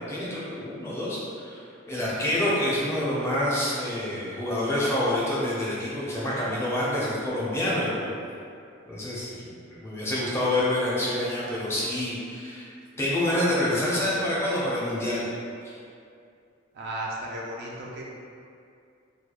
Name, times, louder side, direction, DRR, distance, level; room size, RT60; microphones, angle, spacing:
voice 1, 0.1-8.1 8.9-12.7 13.0-15.2 15.6-15.7, left 1 dB, 15° left, -8 dB, 0.4 m, -27 dB
voice 2, 16.7-18.0, right 1 dB, 55° right, -3 dB, 0.3 m, -34 dB
2.3 x 2.1 x 2.8 m, 2.4 s
head